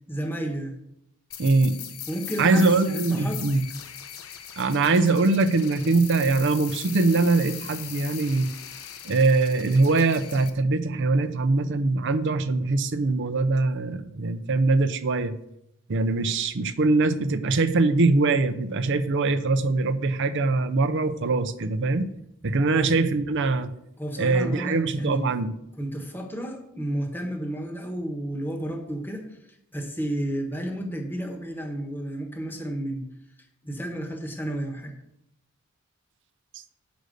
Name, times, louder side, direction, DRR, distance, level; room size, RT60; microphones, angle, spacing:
voice 1, 0.1-0.7 2.1-3.4 22.7-22.9 24.0-25.2 25.8-29.4 29.7-33.1 33.6-34.9, right 1 dB, 10° left, 3 dB, 1.1 m, -32 dB
sound 1, 1.3-10.5, left 10 dB, 85° left, 0.8 m, -40 dB
voice 2, 1.4-1.8 2.4-3.6 4.6-8.5 9.0-15.3 15.9-22.1 22.4-23.7 24.2-25.5, right 3 dB, 60° right, 10 dB, 0.6 m, -22 dB
6.7 x 5.2 x 6.4 m, 0.78 s
head